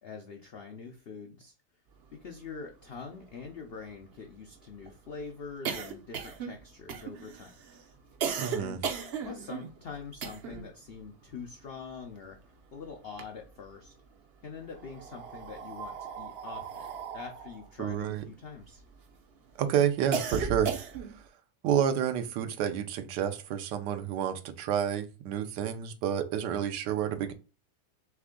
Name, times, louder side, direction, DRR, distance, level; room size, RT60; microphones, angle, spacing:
voice 1, 0.0-1.5 2.1-7.6 8.6-8.8 9.2-12.4 12.7-13.9 14.4-16.9 17.1-18.8, left 5 dB, 80° left, 0.5 m, -44 dB
sound 1, 2.5-2.6 2.9-3.0 3.3-10.7 11.0-12.6 12.9-13.9 14.6-19.1 19.5-21.3, right 6 dB, 60° right, 0.6 m, -37 dB
voice 2, 8.4-8.8 17.8-18.2 19.6-20.7 21.6-27.3, right 9 dB, 85° right, 1.3 m, -29 dB
3.6 x 3.3 x 3.6 m
omnidirectional pair, 1.8 m